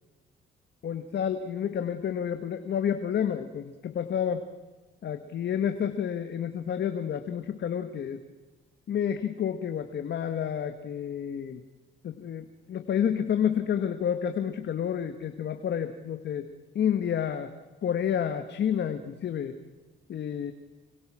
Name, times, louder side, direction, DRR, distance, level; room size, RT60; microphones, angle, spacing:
voice 1, 0.8-4.4 5.0-8.2 8.9-11.6 12.0-16.5 16.7-17.5 17.8-19.6 20.1-20.5, left 8 dB, 60° left, 8 dB, 1.5 m, -29 dB
26.0 x 21.5 x 6.1 m, 1.2 s
cardioid pair, 90°, 20 cm